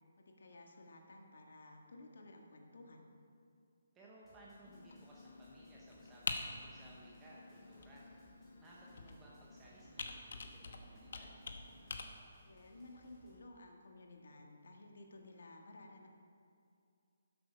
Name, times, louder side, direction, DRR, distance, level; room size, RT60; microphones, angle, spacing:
voice 1, 0.2-3.1 12.4-16.1, left 2 dB, 75° left, 2 dB, 1.7 m, -55 dB
voice 2, 3.9-8.0 8.6-11.4, right 1 dB, 10° right, -5 dB, 0.9 m, -60 dB
sound 1, 4.2-13.4, left 1 dB, 10° left, 2.1 m, -68 dB
Computer keyboard, 4.7-12.0, left 4 dB, 60° left, 1.0 m, -47 dB
12.5 x 8.0 x 5.1 m, 2.4 s
hypercardioid pair, 170°, 0 cm